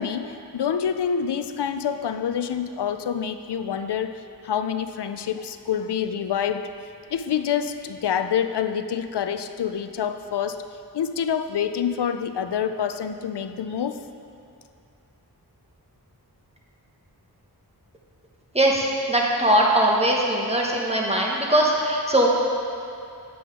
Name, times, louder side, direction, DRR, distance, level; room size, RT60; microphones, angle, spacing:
voice 1, 0.0-6.7 7.1-10.6 10.9-14.0, left 8 dB, 85° left, 9 dB, 0.5 m, -27 dB
voice 2, 18.5-22.3, right 1 dB, 15° right, -2 dB, 1.4 m, -21 dB
7.9 x 7.9 x 4.9 m, 2.5 s
wide cardioid pair, 45°, 40 cm